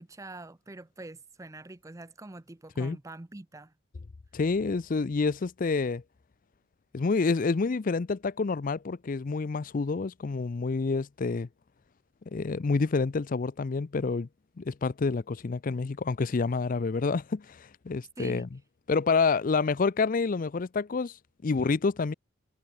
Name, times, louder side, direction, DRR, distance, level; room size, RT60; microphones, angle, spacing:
voice 1, 0.0-3.7 18.2-18.4, right 2 dB, 15° right, 0.5 m, -45 dB
voice 2, 4.3-6.0 6.9-11.5 12.3-14.3 14.6-18.5 18.9-21.1 21.4-22.1, left 4 dB, 40° left, 0.4 m, -28 dB
head